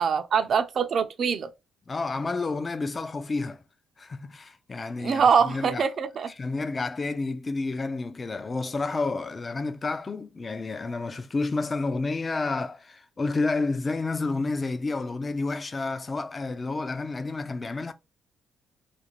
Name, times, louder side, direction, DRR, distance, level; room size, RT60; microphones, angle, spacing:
voice 1, 0.0-1.5 5.0-6.3, right 6 dB, 55° right, 0.4 m, -23 dB
voice 2, 1.9-3.6 4.0-5.9 6.3-17.9, left 3 dB, 30° left, 0.4 m, -30 dB
2.5 x 2.1 x 3.0 m
cardioid pair, 90°, 0 cm